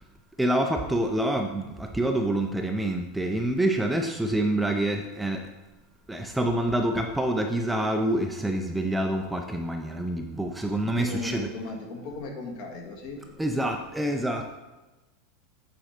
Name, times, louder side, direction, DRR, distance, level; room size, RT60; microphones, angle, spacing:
voice 1, 0.4-5.4 6.1-11.5 13.4-14.6, right 1 dB, 5° right, 3 dB, 0.4 m, -27 dB
voice 2, 10.7-13.2, left 2 dB, 50° left, 1 dB, 1.7 m, -36 dB
8.9 x 4.3 x 5.0 m, 1.1 s
supercardioid pair, 165°, 0 cm